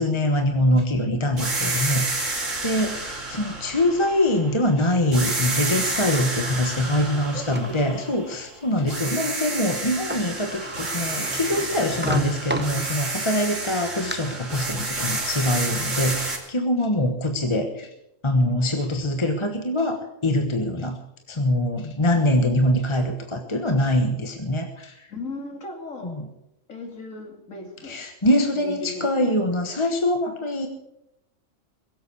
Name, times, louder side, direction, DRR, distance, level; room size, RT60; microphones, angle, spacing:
voice 1, 0.0-17.9 18.2-21.0 21.3-25.1 26.0-26.2 27.8-30.7, left 1 dB, 25° left, 5 dB, 1.2 m, -24 dB
sound 1, 1.4-4.7 5.1-8.5 8.9-16.4, right 2 dB, 70° right, 3.4 m, -30 dB
Sliding door, 5.2-7.8 8.4-8.5 9.8-9.9 10.1-13.3 13.7-14.1, equal, 10° right, 0.7 m, -33 dB
voice 2, 7.1-8.0 8.7-9.2 25.1-26.2 26.7-28.0 28.5-29.4 30.2-30.3, left 2 dB, 85° left, 2 dB, 3.2 m, -37 dB
21.5 x 8.1 x 6.9 m, 0.84 s
omnidirectional pair, 1.3 m